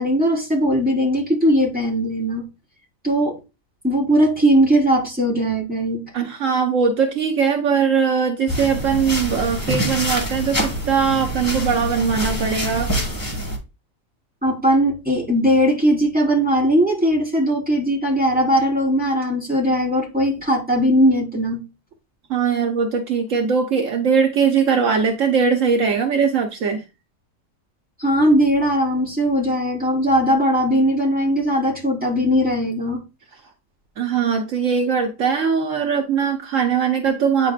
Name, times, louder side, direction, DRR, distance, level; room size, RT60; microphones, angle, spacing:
voice 1, 0.0-2.5 3.0-3.4 3.8-6.0 14.4-21.6 28.0-33.0, equal, 5° right, -3 dB, 3.8 m, -19 dB
voice 2, 6.1-12.9 22.3-26.8 34.0-37.5, right 6 dB, 70° right, 4 dB, 1.3 m, -20 dB
sound 1, 8.5-13.6, equal, 15° left, 1.9 m, -25 dB
9.3 x 5.8 x 2.4 m, 0.28 s
omnidirectional pair, 1.4 m